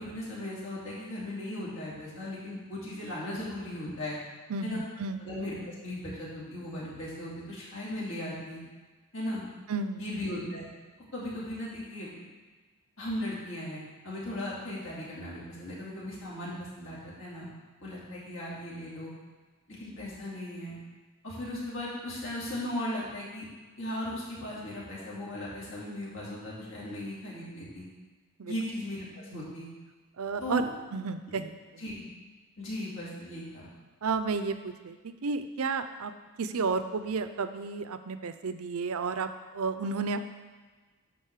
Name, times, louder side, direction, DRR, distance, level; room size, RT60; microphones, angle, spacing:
voice 1, 0.0-4.2 4.6-4.8 5.3-8.6 9.1-9.4 10.0-10.6 11.1-12.1 13.0-17.5 17.8-19.1 19.7-20.8 21.2-23.4 23.8-27.8 28.5-29.7 30.4-30.7 31.8-31.9 32.6-33.7, left 1 dB, 60° left, -7 dB, 2.8 m, -37 dB
voice 2, 4.5-5.2 9.7-10.1 28.4-28.6 29.3-29.5 30.2-31.8 34.0-36.1 36.4-40.2, right 4 dB, 80° right, 10 dB, 0.6 m, -32 dB
10.0 x 4.0 x 6.6 m, 1.4 s
head